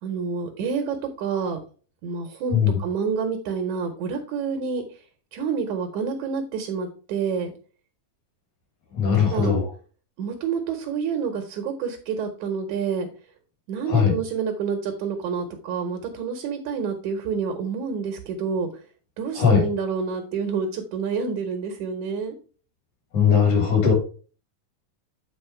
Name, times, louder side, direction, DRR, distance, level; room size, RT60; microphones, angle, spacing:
voice 1, 0.0-1.6 2.0-4.8 5.3-7.5 9.1-9.5 10.2-13.1 13.7-18.7 19.2-22.4, right 6 dB, 65° right, 4 dB, 2.2 m, -28 dB
voice 2, 9.0-9.7 13.9-14.1 19.4-19.6 23.1-23.9, left 7 dB, 55° left, 1 dB, 4.1 m, -19 dB
9.1 x 4.4 x 4.4 m, 0.38 s
omnidirectional pair, 4.3 m